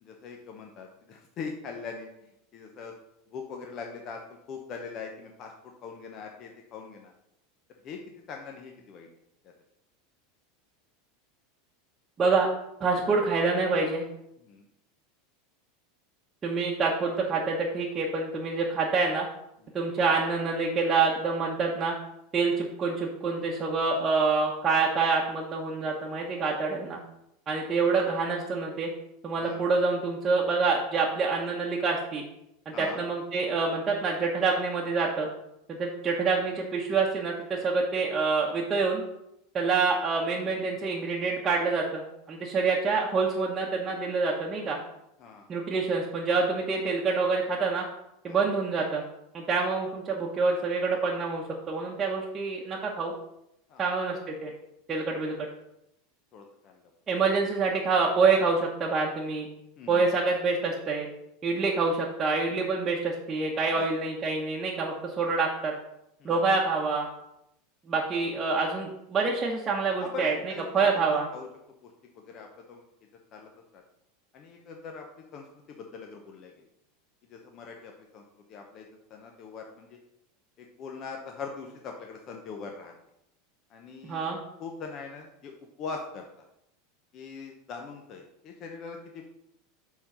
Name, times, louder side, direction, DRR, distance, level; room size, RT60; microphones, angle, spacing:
voice 1, 0.0-2.9 3.3-4.2 4.5-7.1 7.8-8.0 8.3-9.1 9.4-9.5 14.4-14.7 19.6-19.8 29.4-29.6 32.7-33.0 45.2-45.5 48.3-48.4 53.7-54.2 56.3-56.8 59.8-60.1 63.8-64.0 66.2-66.4 70.0-71.5 71.8-72.8 73.3-73.8 74.3-75.1 75.3-76.5 77.2-80.0 80.6-82.9 83.7-84.3 84.6-85.5 85.8-86.3 87.1-89.3, left 5 dB, 40° left, 2 dB, 0.8 m, -42 dB
voice 2, 12.2-12.5 12.8-14.0 16.4-19.3 19.7-21.9 22.3-27.0 27.5-28.9 29.2-32.2 32.8-35.3 35.7-39.0 39.5-44.8 45.5-47.8 48.2-49.0 49.3-53.1 53.8-54.5 54.9-55.3 57.1-59.5 59.9-61.1 61.4-65.7 66.2-67.1 67.9-71.3 84.0-84.4, right 4 dB, 25° right, -4 dB, 1.0 m, -26 dB
7.4 x 3.8 x 5.6 m, 0.83 s
supercardioid pair, 130°, 0 cm